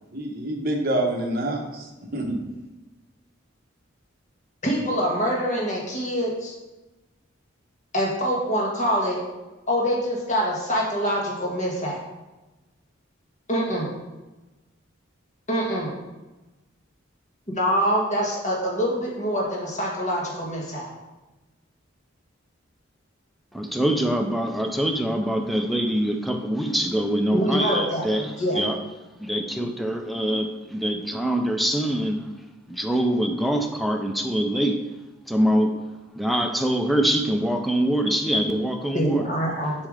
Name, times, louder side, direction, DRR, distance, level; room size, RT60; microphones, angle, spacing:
voice 1, 0.1-2.4, right 1 dB, 50° right, 0 dB, 1.0 m, -27 dB
voice 2, 4.6-6.5 7.9-9.2 9.7-12.0 13.5-13.9 15.5-15.9 17.5-20.9 27.3-28.6 38.9-39.7, equal, 35° left, -3 dB, 1.5 m, -25 dB
voice 3, 23.5-28.8 29.2-32.3 32.7-34.8 35.3-35.8 36.1-39.3, right 1 dB, ahead, 4 dB, 0.5 m, -24 dB
7.1 x 3.3 x 5.0 m, 1.1 s
head